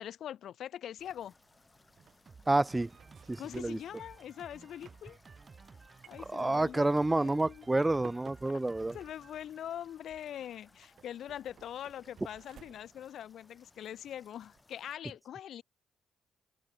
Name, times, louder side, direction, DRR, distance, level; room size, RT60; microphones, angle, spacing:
voice 1, 0.0-1.3 3.4-5.2 6.1-7.7 8.9-15.6, left 10 dB, 70° left, 1.7 m, -43 dB
sound 1, 1.0-15.0, left 3 dB, 20° left, 2.7 m, -65 dB
sound 2, 1.0-14.6, right 8 dB, 60° right, 6.3 m, -61 dB
Drum kit, 2.3-10.1, right 5 dB, 35° right, 7.4 m, -56 dB
voice 2, 2.5-2.9 3.3-3.8 6.3-9.0, right 2 dB, 15° right, 0.3 m, -29 dB
open air
cardioid pair, 90°, 0 cm